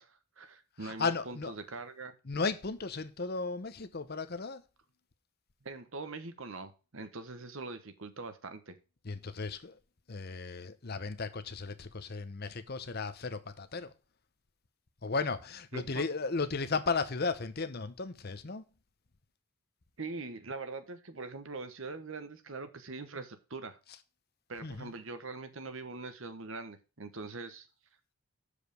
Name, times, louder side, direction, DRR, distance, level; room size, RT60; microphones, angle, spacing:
voice 1, 0.0-2.1 5.6-8.8 15.7-16.0 20.0-23.8 24.5-27.7, right 3 dB, 60° right, 1.1 m, -43 dB
voice 2, 0.8-1.5 2.2-4.6 9.0-9.8 10.1-13.9 15.0-18.6 24.6-24.9, left 4 dB, 45° left, 0.8 m, -35 dB
7.3 x 5.0 x 6.4 m
head